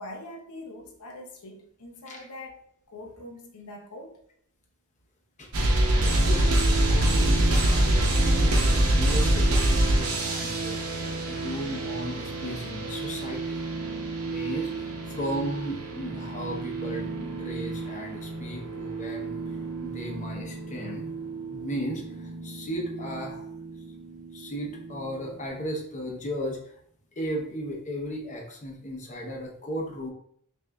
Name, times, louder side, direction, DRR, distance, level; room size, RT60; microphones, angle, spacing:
voice 1, 0.0-2.6 2.9-4.2, left 1 dB, 90° left, 1 dB, 0.7 m, -43 dB
sound 1, 5.5-25.4, right 1 dB, 70° right, 0.8 m, -27 dB
voice 2, 6.1-6.5 6.9-13.6 14.2-14.7 15.1-19.4 19.8-21.1 21.5-23.4 24.3-26.6 27.2-30.1, equal, 35° left, 0 dB, 0.8 m, -35 dB
6.1 x 2.6 x 2.3 m, 0.64 s
head